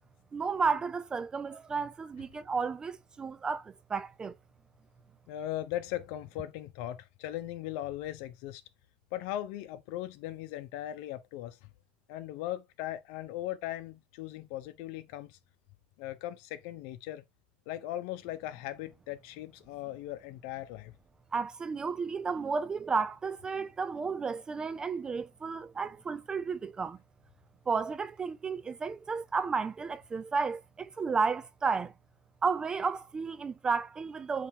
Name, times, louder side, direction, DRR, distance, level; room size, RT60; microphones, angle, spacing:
voice 1, 0.3-4.4 21.3-27.0 27.7-31.9 32.4-34.5, right 5 dB, 15° right, 0.3 m, -32 dB
voice 2, 5.3-8.6 9.1-11.7 12.1-15.4 16.0-17.2 17.7-20.9, left 13 dB, 55° left, 0.9 m, -38 dB
7.9 x 3.4 x 3.7 m
supercardioid pair, 145°, 5 cm